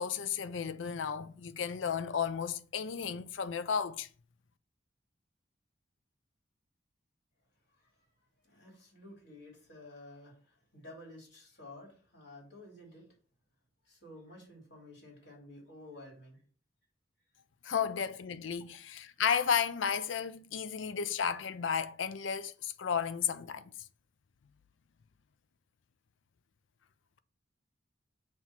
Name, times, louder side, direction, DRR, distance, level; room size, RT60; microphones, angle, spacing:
voice 1, 0.0-4.1 17.6-23.6, left 7 dB, 90° left, 0.5 m, -33 dB
voice 2, 7.7-8.1 8.4-13.1 13.8-16.4, left 1 dB, 65° left, 3.1 m, -52 dB
7.6 x 3.0 x 5.7 m
head